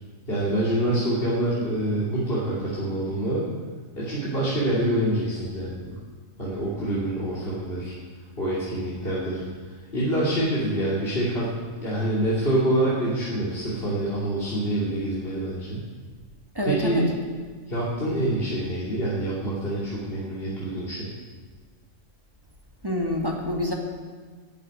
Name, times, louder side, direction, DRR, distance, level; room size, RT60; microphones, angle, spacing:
voice 1, 0.3-3.5 4.0-5.9 6.4-7.9 8.4-9.4 9.9-11.5 11.8-15.8 16.6-17.0 17.7-21.1, right 1 dB, 45° left, -8 dB, 3.1 m, -26 dB
voice 2, 16.6-17.1 22.8-23.7, equal, 15° right, 0 dB, 1.8 m, -26 dB
14.0 x 7.5 x 9.4 m, 1.5 s
omnidirectional pair, 1.4 m